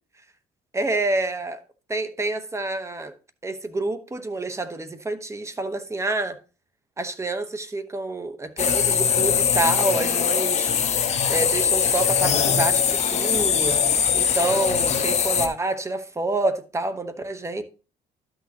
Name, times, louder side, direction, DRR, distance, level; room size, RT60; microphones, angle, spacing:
voice 1, 0.7-1.6 1.9-3.1 3.4-6.4 7.0-10.7 11.3-13.8 14.1-17.6, right 2 dB, 15° right, 1.0 m, -27 dB
sound 1, 8.6-15.5, left 7 dB, 40° left, 1.2 m, -21 dB
12.0 x 6.4 x 2.9 m
cardioid pair, 110°, 17 cm